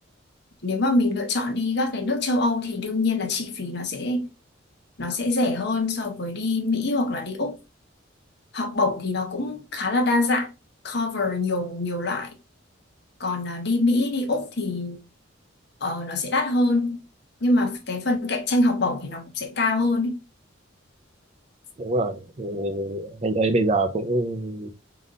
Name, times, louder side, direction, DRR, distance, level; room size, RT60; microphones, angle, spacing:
voice 1, 0.6-4.3 5.0-7.6 8.5-10.5 10.8-12.3 13.2-15.0 15.8-17.0 17.4-20.2, left 2 dB, 55° left, 0.9 m, -24 dB
voice 2, 21.8-24.7, right 2 dB, 30° right, 0.5 m, -25 dB
3.9 x 2.6 x 3.8 m
head